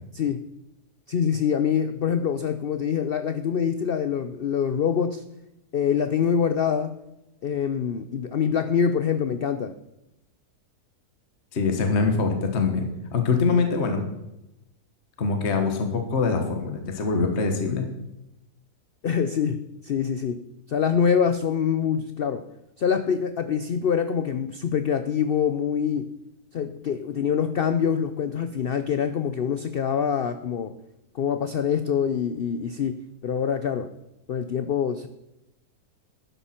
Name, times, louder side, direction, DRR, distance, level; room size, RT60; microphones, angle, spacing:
voice 1, 1.1-5.2 5.7-6.9 7.4-9.7 19.0-22.4 22.8-26.1 26.5-30.7 31.1-33.9 34.3-35.1, left 7 dB, 70° left, 10 dB, 0.5 m, -25 dB
voice 2, 11.5-14.0 15.2-17.8, left 4 dB, 45° left, 5 dB, 1.5 m, -24 dB
12.5 x 10.0 x 4.4 m, 0.92 s
omnidirectional pair, 1.7 m